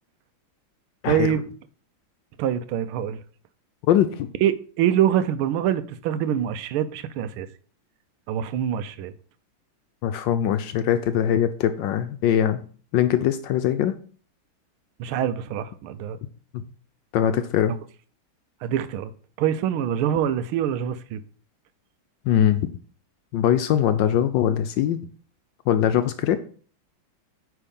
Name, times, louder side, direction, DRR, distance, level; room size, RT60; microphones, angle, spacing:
voice 1, 1.1-1.5 2.4-3.2 4.4-7.5 8.3-9.1 15.0-16.2 18.6-19.1 19.4-21.2, right 10 dB, 90° right, 1.5 m, -24 dB
voice 2, 3.9-4.3 10.0-12.6 12.9-13.9 17.1-17.7 22.3-22.7 23.3-25.0 25.7-26.4, left 10 dB, 75° left, 1.1 m, -21 dB
9.1 x 3.6 x 5.4 m
omnidirectional pair, 2.3 m